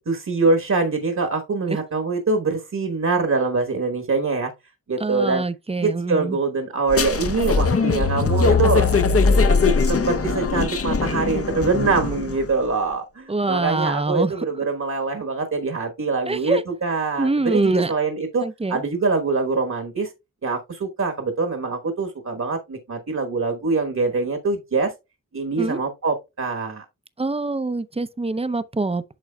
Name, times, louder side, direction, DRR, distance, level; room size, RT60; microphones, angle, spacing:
voice 1, 0.1-4.5 4.9-5.4 5.8-20.1 20.4-24.9 25.3-26.8, right 4 dB, 55° right, 1.3 m, -24 dB
voice 2, 5.0-6.4 13.3-14.3 16.3-16.6 17.2-17.9 18.4-18.8 25.6-25.8 27.2-29.0, right 3 dB, 20° right, 0.5 m, -24 dB
sound 1, 6.9-12.5, left 4 dB, 45° left, 0.7 m, -20 dB
9.1 x 6.2 x 2.2 m
wide cardioid pair, 65°, 33 cm